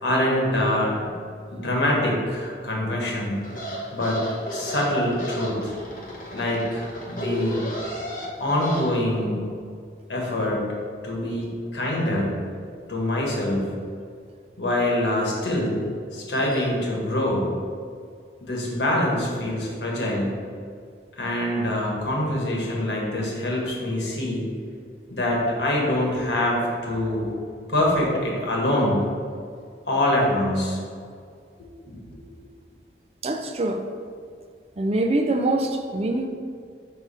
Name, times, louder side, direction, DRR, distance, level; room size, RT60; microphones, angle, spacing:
voice 1, 0.0-1.0 1.5-3.4 3.9-5.7 6.3-7.7 8.4-9.5 10.1-10.7 11.0-12.3 12.9-13.6 14.6-17.5 18.4-20.3 21.2-24.5 25.1-29.0 29.9-30.8 31.6-31.7 32.1-32.2, left 1 dB, 85° left, -2 dB, 1.4 m, -25 dB
sound 1, 3.4-8.9, equal, 50° left, 1.0 m, -33 dB
voice 2, 33.2-33.9 34.8-36.3, right 2 dB, 35° right, 5 dB, 0.4 m, -24 dB
4.7 x 3.9 x 5.6 m, 2.2 s
head